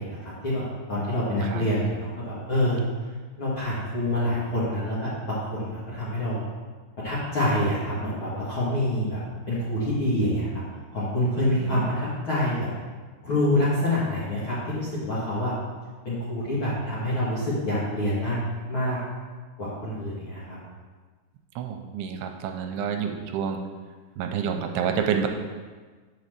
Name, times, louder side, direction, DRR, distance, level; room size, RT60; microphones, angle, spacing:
voice 1, 0.0-2.8 3.4-6.5 7.0-9.2 9.5-10.6 10.9-12.6 13.2-15.5 16.1-18.4 18.7-19.0 19.6-20.6, left 1 dB, 45° left, -9 dB, 1.7 m, -26 dB
voice 2, 11.5-11.9 21.6-23.6 24.2-25.3, right 7 dB, 85° right, 4 dB, 2.6 m, -28 dB
8.1 x 4.3 x 6.6 m, 1.4 s
omnidirectional pair, 4.7 m